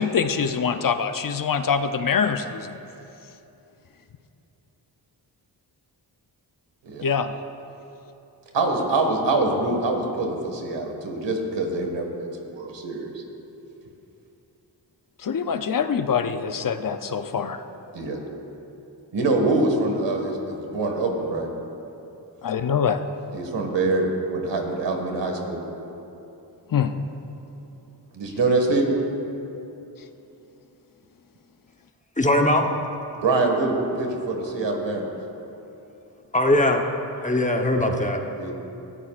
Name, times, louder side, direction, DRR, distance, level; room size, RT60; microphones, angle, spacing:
voice 1, 0.0-2.8 7.0-7.3 15.2-17.6 22.4-23.0 26.7-26.9, left 6 dB, 50° left, 9 dB, 0.6 m, -24 dB
voice 2, 8.5-13.2 17.9-18.2 19.1-21.5 23.3-25.6 28.1-28.9 33.2-35.0 38.4-38.5, right 2 dB, 80° right, 2 dB, 1.9 m, -24 dB
voice 3, 32.2-32.7 36.3-36.9 37.2-38.2, left 1 dB, 15° left, 3 dB, 1.0 m, -20 dB
18.0 x 14.0 x 2.5 m, 2.9 s
wide cardioid pair, 90°, 43 cm